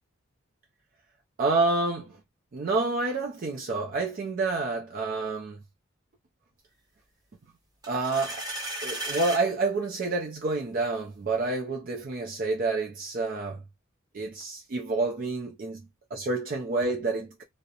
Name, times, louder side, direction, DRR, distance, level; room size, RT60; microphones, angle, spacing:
voice 1, 1.4-2.2 2.5-5.6 7.9-8.5 8.8-13.6 14.1-15.9 16.1-17.4, right 3 dB, 45° right, 0.4 m, -28 dB
sound 1, 7.8-9.4, right 1 dB, 20° right, 0.7 m, -34 dB
2.4 x 2.0 x 2.7 m
head